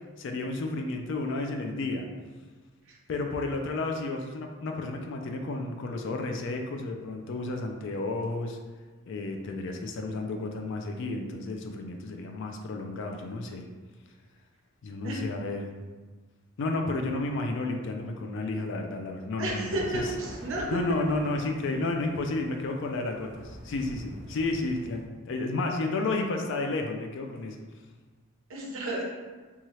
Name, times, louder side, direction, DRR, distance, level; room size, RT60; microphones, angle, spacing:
voice 1, 0.2-2.1 3.1-8.6 9.1-13.7 14.8-15.7 16.6-20.1 20.7-27.6, left 2 dB, 55° left, 3 dB, 0.3 m, -32 dB
voice 2, 19.4-20.8 28.5-29.0, right 2 dB, 65° right, -2 dB, 0.6 m, -32 dB
sound 1, 19.6-25.0, equal, 30° right, 0.9 m, -45 dB
2.7 x 2.3 x 3.0 m, 1.4 s
head